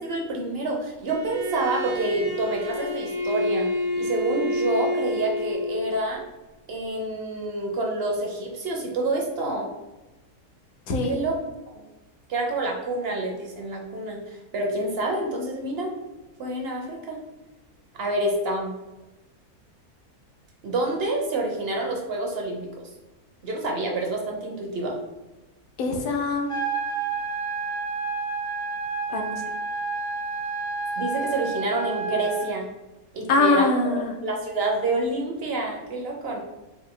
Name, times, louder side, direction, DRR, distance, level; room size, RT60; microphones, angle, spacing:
voice 1, 0.0-3.7 4.0-6.2 6.7-9.7 11.1-11.4 11.7-11.8 12.3-15.9 16.4-17.2 17.9-18.7 20.6-22.7 23.4-25.0 31.0-32.7 33.1-33.7 34.2-36.4, right 2 dB, 55° right, 1 dB, 0.7 m, -28 dB
Bowed string instrument, 1.1-5.9, left 1 dB, 75° right, 1.1 m, -28 dB
voice 2, 10.9-11.2 25.8-26.5 29.1-29.4 33.3-34.1, left 3 dB, 70° left, 2 dB, 1.1 m, -23 dB
sound 1, 26.5-32.5, right 4 dB, 35° left, 0.5 m, -30 dB
4.1 x 2.6 x 3.7 m, 1.1 s
omnidirectional pair, 1.6 m